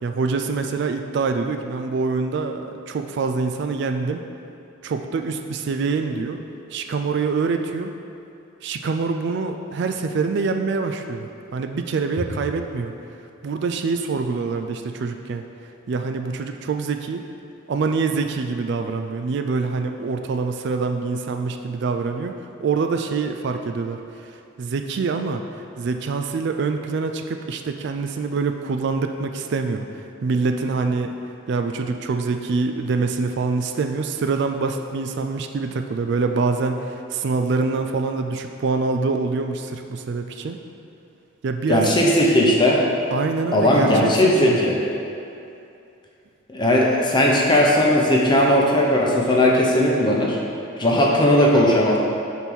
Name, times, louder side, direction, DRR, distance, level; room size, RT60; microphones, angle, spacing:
voice 1, 0.0-4.2 4.8-6.4 6.7-7.9 8.6-12.9 13.4-15.4 15.9-17.2 17.7-24.3 24.6-25.4 25.8-31.2 31.5-40.6 41.4-41.9 43.1-44.6, right 4 dB, 55° right, 5 dB, 0.3 m, -25 dB
voice 2, 41.7-42.8 43.5-44.8 46.5-50.4 50.8-52.0, left 1 dB, 20° left, -2 dB, 0.7 m, -17 dB
5.3 x 4.3 x 6.1 m, 2.7 s
head